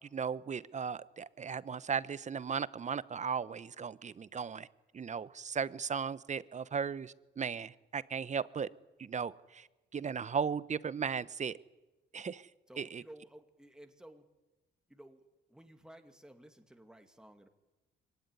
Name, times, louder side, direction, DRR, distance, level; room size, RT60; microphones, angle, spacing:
voice 1, 0.0-4.7 4.9-8.7 9.0-9.7 9.9-11.6 12.1-12.5 12.8-13.0, right 6 dB, 35° right, 17 dB, 0.9 m, -36 dB
voice 2, 12.7-14.3 14.9-15.2 15.5-17.5, right 1 dB, 5° right, 6 dB, 2.4 m, -55 dB
23.5 x 18.0 x 9.8 m, 1.1 s
cardioid pair, 90°, 20 cm